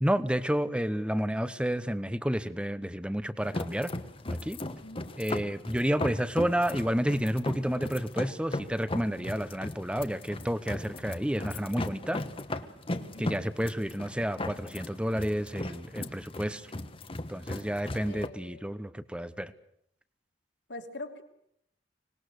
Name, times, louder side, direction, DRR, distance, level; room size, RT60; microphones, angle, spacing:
voice 1, 0.0-3.9 4.3-4.6 5.2-12.2 13.2-16.7 17.3-19.5, equal, 5° right, 13 dB, 1.0 m, -30 dB
sound 1, 3.4-18.3, left 2 dB, 30° left, 1.3 m, -37 dB
voice 2, 4.6-5.2 13.0-13.4 18.0-18.8 20.7-21.2, left 2 dB, 80° left, 4 dB, 3.0 m, -44 dB
25.5 x 20.0 x 6.5 m, 0.72 s
head